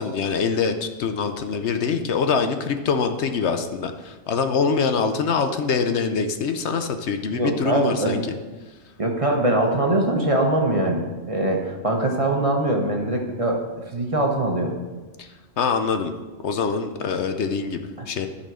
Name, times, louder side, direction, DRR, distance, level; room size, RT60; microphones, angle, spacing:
voice 1, 0.0-8.4 15.2-15.3 15.6-16.1 16.4-18.3, left 5 dB, 70° left, 7 dB, 1.0 m, -24 dB
voice 2, 7.3-8.2 9.0-13.6 13.9-14.7, right 1 dB, 30° right, 1 dB, 1.1 m, -22 dB
12.0 x 4.2 x 6.2 m, 1.2 s
omnidirectional pair, 1.2 m